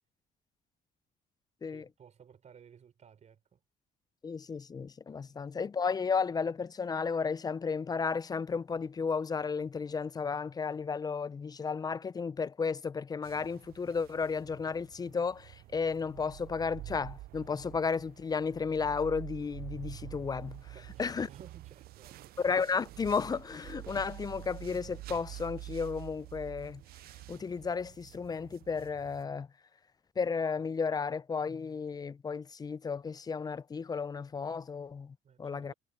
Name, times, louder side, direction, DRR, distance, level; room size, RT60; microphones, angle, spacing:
voice 1, 1.7-3.6 5.3-5.4 20.7-22.4 35.2-35.7, right 7 dB, 45° right, 3.9 m, -57 dB
voice 2, 4.2-20.7 21.0-21.3 22.4-26.8 27.3-29.5 30.2-35.7, left 5 dB, 25° left, 0.4 m, -33 dB
cama cobijas ciudad nocturno, 13.2-29.3, right 16 dB, 65° right, 0.5 m, -48 dB
cardioid pair, 110°, 17 cm